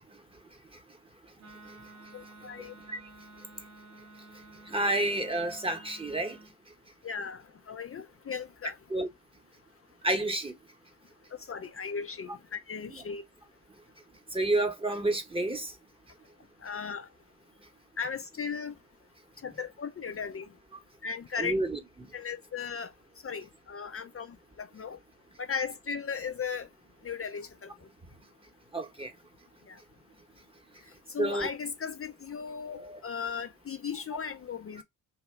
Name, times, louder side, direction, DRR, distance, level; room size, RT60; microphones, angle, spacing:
Wind instrument woodwind instrument, 1.4-6.5, right 2 dB, 90° right, 1.0 m, -52 dB
voice 1, 2.1-2.7 7.0-8.8 11.3-13.2 16.6-17.1 18.0-18.7 19.4-20.5 21.0-21.6 22.1-22.9 23.2-25.0 25.4-26.7 27.0-27.7 29.7-29.8 31.1-34.8, left 6 dB, 30° left, 0.4 m, -37 dB
voice 2, 4.7-6.4 8.9-9.1 10.0-10.5 14.3-15.7 21.4-21.8 28.7-29.1 31.2-31.5 32.7-33.0, right 2 dB, 10° right, 0.9 m, -29 dB
2.8 x 2.2 x 3.2 m
hypercardioid pair, 50°, 48 cm